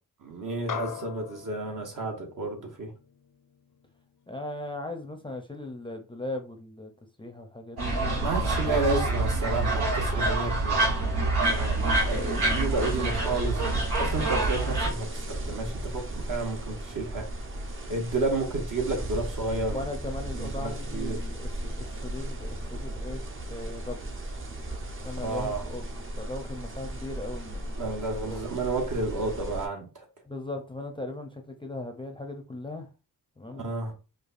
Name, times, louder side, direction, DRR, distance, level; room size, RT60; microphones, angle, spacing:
voice 1, 0.2-2.9 8.1-17.3 17.9-19.8 20.3-21.2 25.2-25.7 27.8-30.0 33.5-33.9, right 2 dB, 55° right, 1.2 m, -31 dB
sound 1, 0.7-5.3, left 8 dB, 60° left, 0.6 m, -42 dB
voice 2, 4.3-6.9 7.2-8.8 19.7-24.1 25.0-25.8 26.2-27.9 28.2-28.4 30.3-32.9 33.4-33.6, left 2 dB, 15° left, 0.6 m, -38 dB
sound 2, 7.8-14.9, right 2 dB, 90° right, 1.5 m, -26 dB
sound 3, 11.4-29.7, right 1 dB, 35° right, 0.8 m, -36 dB
4.9 x 2.3 x 2.5 m
cardioid pair, 75°, 37 cm